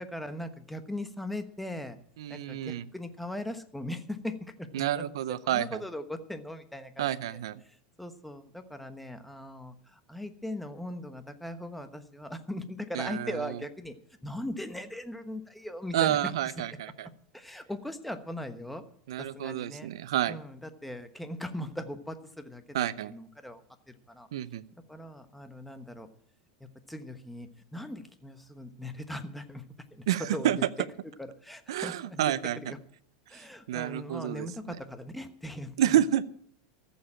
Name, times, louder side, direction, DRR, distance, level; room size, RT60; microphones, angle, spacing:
voice 1, 0.0-2.0 2.3-13.9 14.2-16.3 17.3-18.8 19.2-19.9 20.3-23.6 23.9-24.3 24.9-26.1 26.6-29.6 29.9-30.0 30.3-30.6 31.2-32.8 33.3-35.9, left 1 dB, 5° left, 8 dB, 1.1 m, -39 dB
voice 2, 2.2-2.8 4.7-5.8 7.0-7.6 13.0-13.3 15.9-17.1 19.1-20.3 22.7-23.1 24.3-24.6 30.1-30.6 31.7-32.6 33.3-33.4 33.7-34.8 35.8-36.2, right 12 dB, 85° right, 15 dB, 0.6 m, -29 dB
14.0 x 7.1 x 8.8 m, 0.63 s
supercardioid pair, 135°, 3 cm